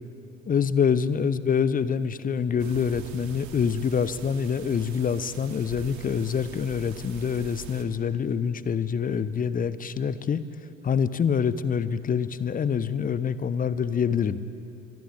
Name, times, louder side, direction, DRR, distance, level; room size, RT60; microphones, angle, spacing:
voice 1, 0.5-10.4 10.8-14.4, left 7 dB, 20° left, 15 dB, 0.9 m, -26 dB
sound 1, 2.6-7.8, right 8 dB, 45° right, 2.7 m, -44 dB
24.5 x 20.0 x 8.8 m, 2.8 s
figure-of-eight pair, 70°, 39 cm